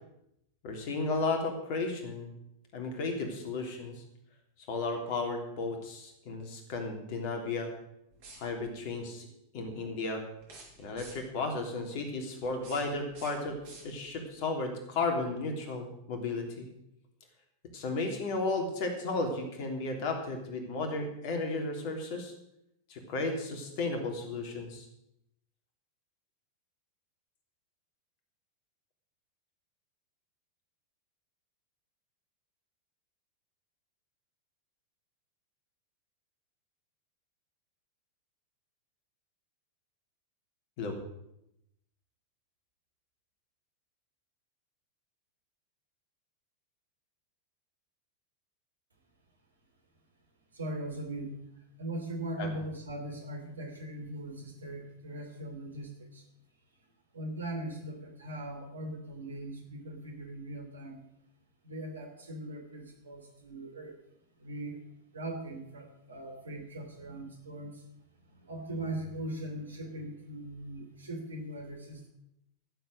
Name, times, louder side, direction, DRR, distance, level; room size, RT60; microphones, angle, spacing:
voice 1, 0.6-2.3 2.7-4.0 4.7-7.7 8.3-9.3 9.5-10.2 10.8-13.6 13.8-16.7 17.7-22.3 22.9-24.9 40.8-41.0 52.4-52.5, left 3 dB, 50° left, 3 dB, 3.2 m, -34 dB
sound 1, 8.1-8.8 10.4-11.4 12.4-14.3, right 2 dB, 55° right, 6.6 m, -52 dB
voice 2, 50.6-51.4 51.8-56.2 57.1-61.0 61.6-63.9 64.4-64.8 65.1-67.8 68.5-72.1, right 1 dB, 75° right, 4 dB, 3.0 m, -40 dB
13.5 x 7.9 x 7.7 m, 0.80 s
figure-of-eight pair, 90°, 0 cm